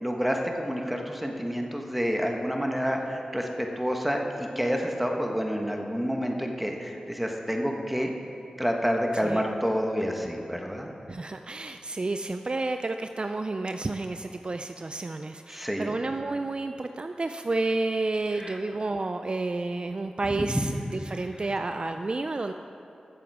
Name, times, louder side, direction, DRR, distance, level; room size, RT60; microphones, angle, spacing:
voice 1, 0.0-8.1 8.6-10.9 15.5-15.9 18.4-18.6 20.3-20.7, equal, 5° right, 2 dB, 1.3 m, -28 dB
voice 2, 11.1-22.5, right 2 dB, 45° right, 7 dB, 0.4 m, -30 dB
14.5 x 7.0 x 4.8 m, 2.7 s
cardioid pair, 50°, 2 cm